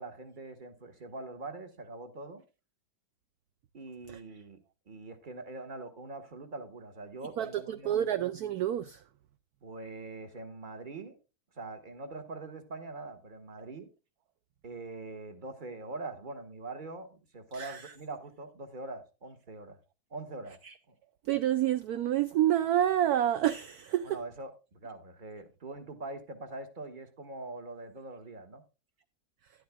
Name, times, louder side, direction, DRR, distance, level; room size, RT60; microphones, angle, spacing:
voice 1, 0.0-2.4 3.7-4.6 4.9-8.1 9.6-11.2 11.6-13.9 14.6-19.8 20.1-20.6 20.9-21.0 24.0-28.6, right 2 dB, 25° right, 1.4 m, -43 dB
voice 2, 7.4-9.0 17.5-17.9 20.6-20.7 21.2-24.2, right 11 dB, 70° right, 1.0 m, -28 dB
12.0 x 11.5 x 2.2 m
omnidirectional pair, 2.1 m